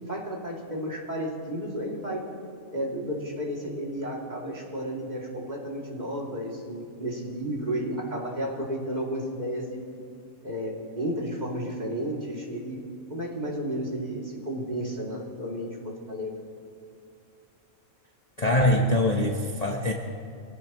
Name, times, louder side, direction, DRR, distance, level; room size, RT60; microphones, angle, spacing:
voice 1, 0.1-2.3 2.7-9.8 10.4-12.8 13.1-16.3, equal, 30° right, -3 dB, 3.0 m, -32 dB
voice 2, 18.4-19.9, left 1 dB, 30° left, -1 dB, 1.1 m, -23 dB
25.0 x 17.0 x 3.1 m, 2.5 s
omnidirectional pair, 1.5 m